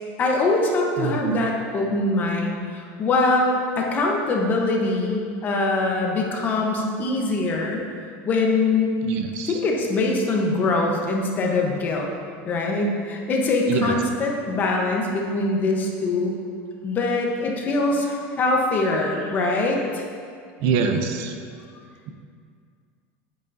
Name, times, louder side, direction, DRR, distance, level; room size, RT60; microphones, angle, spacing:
voice 1, 0.2-7.8 8.2-8.9 9.4-12.1 12.4-16.3 16.8-20.0, left 2 dB, 25° left, 0 dB, 0.9 m, -23 dB
voice 2, 1.0-1.4 9.0-9.5 13.7-14.0 20.6-21.3, right 6 dB, 55° right, 6 dB, 0.6 m, -24 dB
8.9 x 8.3 x 2.7 m, 2.2 s
supercardioid pair, 165°, 7 cm